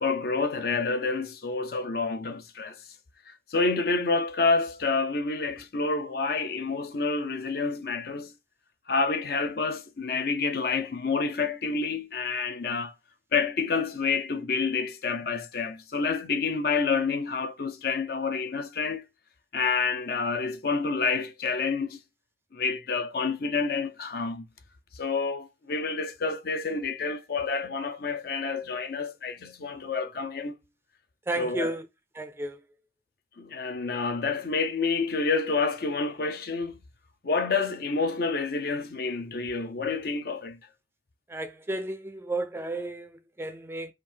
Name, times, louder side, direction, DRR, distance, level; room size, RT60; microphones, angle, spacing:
voice 1, 0.0-2.8 3.3-8.3 8.9-12.9 13.3-19.0 19.5-22.0 22.5-24.4 24.9-30.6 31.4-31.8 33.4-36.8 37.2-40.6, left 4 dB, 60° left, 0.6 m, -28 dB
voice 2, 31.3-31.9 32.1-32.6 41.3-43.9, right 2 dB, 15° right, 0.4 m, -33 dB
3.7 x 2.6 x 4.4 m
head